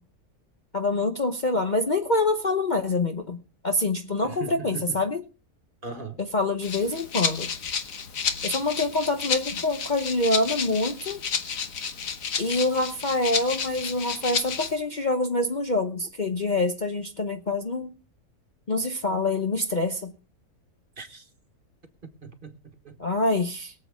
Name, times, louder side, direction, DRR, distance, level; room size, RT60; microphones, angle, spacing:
voice 1, 0.7-3.4 3.6-5.2 6.2-7.5 8.4-11.2 12.4-17.9 18.7-20.1 23.0-23.7, left 2 dB, 35° left, 0.9 m, -26 dB
voice 2, 4.2-5.0 5.8-6.2 21.0-21.3 22.2-23.0, right 4 dB, 35° right, 1.5 m, -39 dB
Rattle (instrument), 6.6-14.7, left 6 dB, 65° left, 1.5 m, -31 dB
23.0 x 7.8 x 3.6 m
omnidirectional pair, 1.6 m